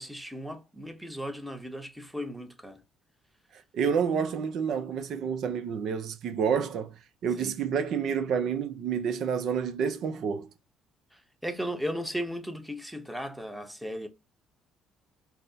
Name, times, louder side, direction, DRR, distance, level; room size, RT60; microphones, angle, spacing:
voice 1, 0.0-2.8 7.4-7.5 11.1-14.1, equal, 5° right, 0.8 m, -36 dB
voice 2, 3.7-6.9 7.2-10.5, right 7 dB, 65° right, 0.5 m, -29 dB
5.7 x 2.1 x 2.7 m
cardioid pair, 90°, 0 cm